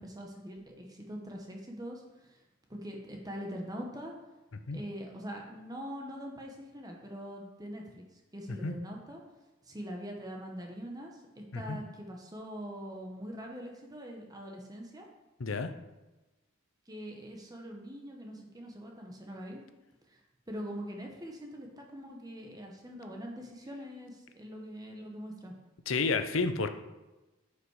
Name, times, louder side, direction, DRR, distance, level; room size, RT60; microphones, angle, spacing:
voice 1, 0.0-2.4 2.7-4.1 4.7-9.2 9.6-15.1 16.9-19.6 20.1-20.2 20.5-25.5, equal, 20° right, 0 dB, 1.1 m, -43 dB
voice 2, 15.4-15.7 25.9-26.7, left 4 dB, 70° left, 9 dB, 0.7 m, -30 dB
10.0 x 5.5 x 4.8 m, 1.1 s
head